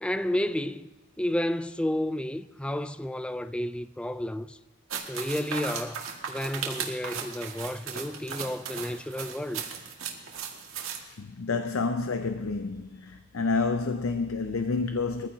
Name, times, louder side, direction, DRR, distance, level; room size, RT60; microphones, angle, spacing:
voice 1, 0.0-0.9 1.2-4.6 5.1-9.6, left 1 dB, 5° left, 0.4 m, -31 dB
sound 1, 4.9-11.0, right 6 dB, 80° right, 2.0 m, -36 dB
voice 2, 11.0-15.3, left 4 dB, 85° left, 0.7 m, -29 dB
22.5 x 15.0 x 2.8 m
head